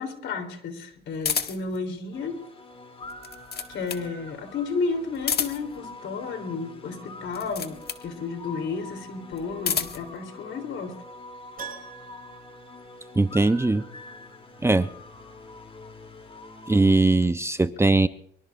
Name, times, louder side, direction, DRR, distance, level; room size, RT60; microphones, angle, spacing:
voice 1, 0.0-2.4 3.7-11.0, left 4 dB, 75° left, 5 dB, 3.4 m, -32 dB
sound 1, 1.2-1.8 3.0-4.1 5.1-5.8 7.3-8.1 9.3-10.1, left 7 dB, 55° left, 1.7 m, -29 dB
sound 2, 2.1-16.9, left 2 dB, 30° left, 2.9 m, -45 dB
Keyboard (musical), 11.6-13.6 13.9-14.0 16.7-16.8 17.0-17.1, right 7 dB, 45° right, 7.8 m, -44 dB
voice 2, 13.2-13.8 14.6-14.9 16.7-18.1, right 2 dB, 15° right, 11 dB, 0.6 m, -20 dB
24.5 x 23.5 x 2.5 m, 0.69 s
cardioid pair, 90°, 20 cm